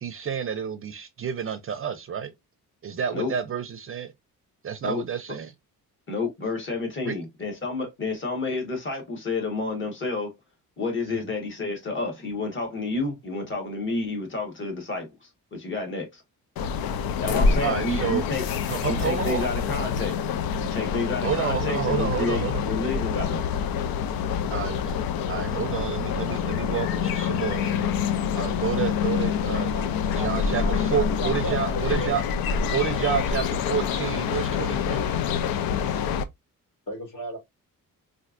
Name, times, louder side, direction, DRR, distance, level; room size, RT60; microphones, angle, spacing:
voice 1, 0.0-2.3 2.8-4.1 4.6-5.5 7.0-7.2 11.1-11.2 17.6-18.3 18.7-19.5 21.2-22.6 24.5-25.0 25.3-27.8 28.3-29.7 30.1-32.2 32.7-35.1, right 7 dB, 40° right, 0.5 m, -29 dB
voice 2, 6.1-10.3 10.8-16.2 17.2-18.4 18.9-20.3 20.6-23.5, left 3 dB, 35° left, 1.4 m, -30 dB
sound 1, 16.6-36.2, left 7 dB, 90° left, 0.5 m, -26 dB
sound 2, 21.2-28.2, right 4 dB, 10° left, 1.0 m, -45 dB
voice 3, 29.6-32.1 36.9-37.4, right 1 dB, 60° left, 2.3 m, -35 dB
4.3 x 2.6 x 2.4 m
cardioid pair, 145°, 35 cm